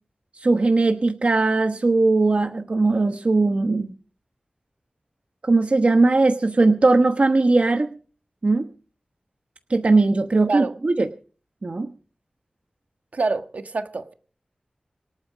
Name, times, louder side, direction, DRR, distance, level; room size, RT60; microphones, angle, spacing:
voice 1, 0.3-3.9 5.4-7.9 8.4-8.7 9.7-11.1 11.6-11.9, right 3 dB, 55° right, 1.1 m, -19 dB
voice 2, 13.1-14.1, right 3 dB, 70° right, 1.5 m, -26 dB
26.5 x 9.0 x 5.1 m
wide cardioid pair, 80°, 3 cm